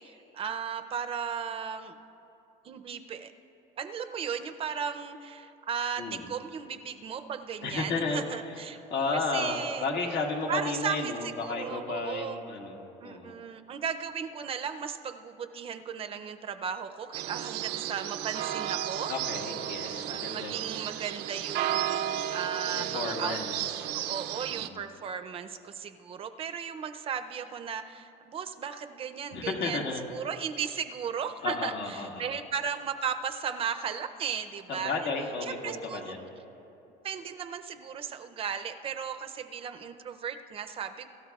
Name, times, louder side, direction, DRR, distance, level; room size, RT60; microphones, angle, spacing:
voice 1, 0.0-1.9 2.6-3.3 3.8-8.8 9.1-9.8 10.5-12.4 13.0-19.1 20.1-23.4 23.9-29.8 30.1-35.1 35.4-36.1 37.0-41.1, right 7 dB, 35° right, 8 dB, 0.5 m, -36 dB
voice 2, 7.6-8.2 8.9-13.3 19.1-20.7 22.7-23.9 24.5-24.8 29.3-30.0 31.4-32.3 34.7-36.3, left 3 dB, 75° left, 0 dB, 1.8 m, -33 dB
sound 1, 17.1-24.7, right 12 dB, 90° right, 0.5 m, -33 dB
24.5 x 13.5 x 2.3 m, 2.9 s
cardioid pair, 155°, 16 cm